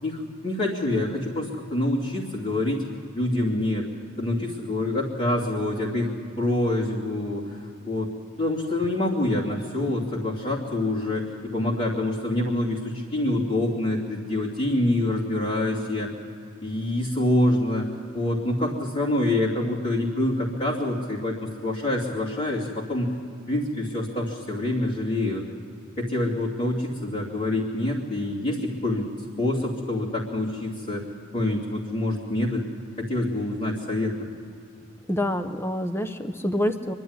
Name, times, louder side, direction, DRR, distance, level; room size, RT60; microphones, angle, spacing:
voice 1, 0.0-2.8 3.1-3.9 4.2-6.1 6.4-7.6 7.8-8.1 8.4-16.1 16.6-17.9 18.1-23.1 23.5-25.4 26.0-29.1 29.4-31.0 31.3-32.6 33.0-34.3, left 1 dB, 40° left, -9 dB, 2.7 m, -26 dB
voice 2, 35.1-36.9, left 1 dB, 10° left, 9 dB, 0.8 m, -27 dB
24.5 x 12.0 x 9.5 m, 2.6 s
head